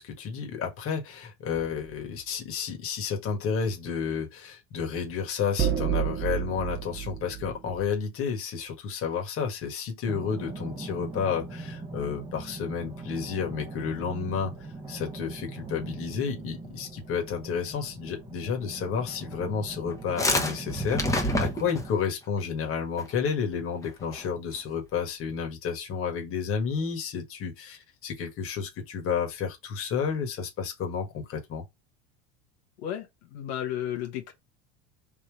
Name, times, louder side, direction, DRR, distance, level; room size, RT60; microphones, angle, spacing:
voice 1, 0.0-14.5 14.9-31.6, left 6 dB, 40° left, 1.6 m, -31 dB
sound 1, 1.5-1.9 5.6-7.9, right 10 dB, 30° right, 1.1 m, -30 dB
sound 2, 10.0-21.9, right 3 dB, 15° right, 1.1 m, -41 dB
sound 3, 19.9-22.0 23.0-23.3 23.5-23.6 23.8-24.2, left 1 dB, 10° left, 1.0 m, -27 dB
voice 2, 32.8-34.3, left 11 dB, 85° left, 1.5 m, -33 dB
3.7 x 2.8 x 4.7 m
supercardioid pair, 120°, 33 cm